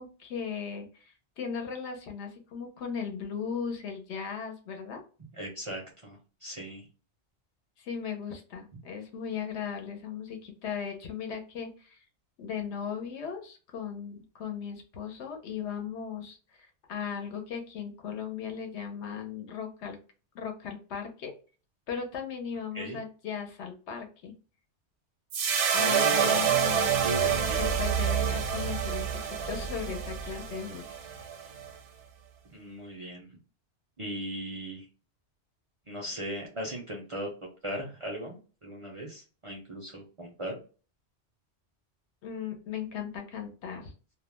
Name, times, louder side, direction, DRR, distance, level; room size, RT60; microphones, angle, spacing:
voice 1, 0.0-5.0 7.8-12.0 12.4-20.0 20.3-21.3 21.9-24.3 25.7-27.1 27.3-31.0 42.2-43.9, left 7 dB, 75° left, 4 dB, 0.9 m, -37 dB
voice 2, 5.3-6.9 22.7-23.0 25.8-26.5 27.0-27.7 32.5-33.4 34.0-34.9 35.9-37.3 37.6-40.6, right 1 dB, 45° right, -2 dB, 0.4 m, -38 dB
sound 1, 25.3-31.7, right 7 dB, 75° right, 0.9 m, -27 dB
2.3 x 2.1 x 3.1 m, 0.37 s
omnidirectional pair, 1.2 m